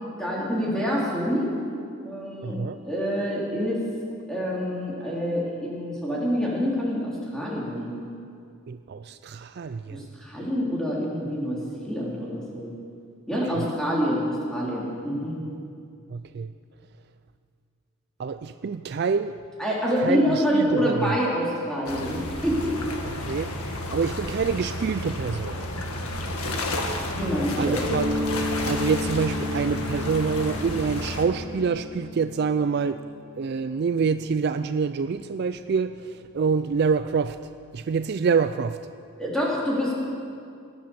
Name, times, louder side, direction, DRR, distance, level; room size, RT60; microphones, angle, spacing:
voice 1, 0.2-1.5 2.0-3.8 4.3-7.9 9.9-11.6 11.8-12.7 13.3-15.3 19.6-22.8 27.1-27.8 39.2-39.9, equal, 5° left, -6 dB, 3.2 m, -26 dB
voice 2, 2.4-2.8 8.7-10.1 13.5-13.7 16.1-16.5 18.2-19.4 20.0-21.2 23.3-23.5 23.9-25.6 27.6-28.3 28.7-33.0 33.4-37.4 37.7-38.8, right 5 dB, 50° right, 10 dB, 0.3 m, -26 dB
sound 1, 21.9-31.2, left 1 dB, 85° left, 1.8 m, -31 dB
Mallet percussion, 27.8-33.3, left 2 dB, 55° left, 2.1 m, -32 dB
18.5 x 10.5 x 7.0 m, 2.4 s
head